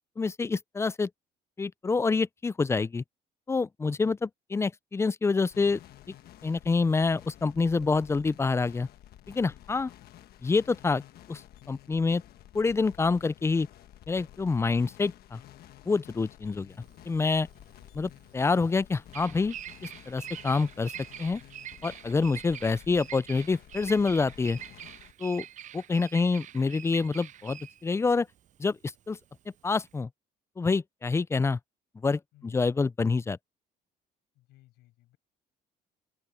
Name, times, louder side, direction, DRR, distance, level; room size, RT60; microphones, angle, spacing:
voice 1, 0.2-1.1 1.6-3.0 3.5-5.8 6.1-6.2 6.4-8.9 9.3-9.9 10.4-11.0 11.3-11.4 11.7-12.2 12.5-13.7 14.1-15.4 15.9-16.7 17.1-17.5 17.9-19.6 19.8-20.9 21.2-21.4 21.8-24.6 25.2-25.5 25.7-28.3 28.6-28.8 29.1-29.2 29.6-30.1 30.6-31.6 32.0-33.4, left 4 dB, 15° left, 0.4 m, -27 dB
sound 1, 5.5-25.1, left 13 dB, 65° left, 1.2 m, -52 dB
Bird vocalization bird call bird song, 16.7-30.0, right 11 dB, 45° right, 0.6 m, -45 dB
voice 2, 34.3-35.2, left 17 dB, 85° left, 6.3 m, -59 dB
open air
cardioid pair, 110°, 17 cm